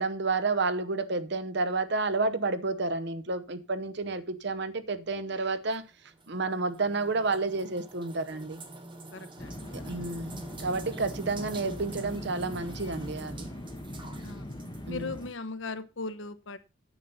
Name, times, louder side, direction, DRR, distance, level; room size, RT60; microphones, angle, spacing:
voice 1, 0.0-5.8 6.3-8.6 9.9-13.5 14.9-15.1, right 3 dB, 55° right, 0.9 m, -30 dB
sound 1, 5.7-15.3, right 2 dB, 25° right, 1.3 m, -47 dB
voice 2, 9.1-9.6 11.2-11.3 14.2-14.5 14.9-16.6, left 3 dB, 65° left, 1.0 m, -38 dB
sound 2, 9.4-15.3, left 1 dB, 20° left, 1.3 m, -41 dB
9.2 x 7.4 x 5.5 m
head